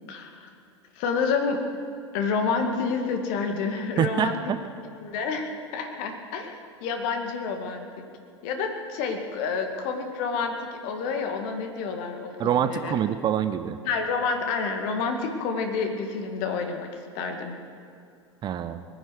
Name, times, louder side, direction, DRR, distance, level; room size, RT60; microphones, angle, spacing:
voice 1, 0.1-0.5 1.0-1.6 2.1-4.4 5.0-6.5 6.8-8.0 8.4-13.0 13.9-16.9 17.1-17.5, left 5 dB, 50° left, 4 dB, 2.2 m, -29 dB
voice 2, 4.0-4.6 12.4-13.8 18.4-18.8, right 9 dB, 30° right, 11 dB, 0.7 m, -25 dB
21.5 x 10.0 x 6.5 m, 2.5 s
figure-of-eight pair, 85°, 15 cm